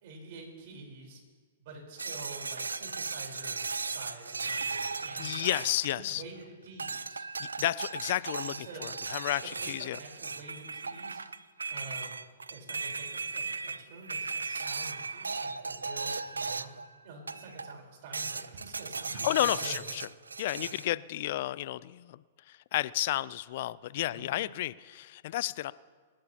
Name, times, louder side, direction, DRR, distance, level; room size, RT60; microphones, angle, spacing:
voice 1, 0.0-1.2 1.6-5.6 5.9-7.3 8.5-8.9 9.6-11.2 11.7-12.2 12.5-16.7 17.0-19.9 20.6-20.7 24.1-24.5, right 3 dB, 55° right, 0 dB, 4.1 m, -48 dB
sound 1, 2.0-6.4 6.8-16.9 17.3-17.8 18.1-20.9, right 4 dB, 90° right, 0.5 m, -37 dB
voice 2, 5.2-6.2 7.4-10.0 19.2-20.1 20.4-22.2 22.5-25.7, left 15 dB, 55° left, 19 dB, 0.4 m, -32 dB
27.0 x 11.5 x 2.9 m, 1.5 s
hypercardioid pair, 110°, 0 cm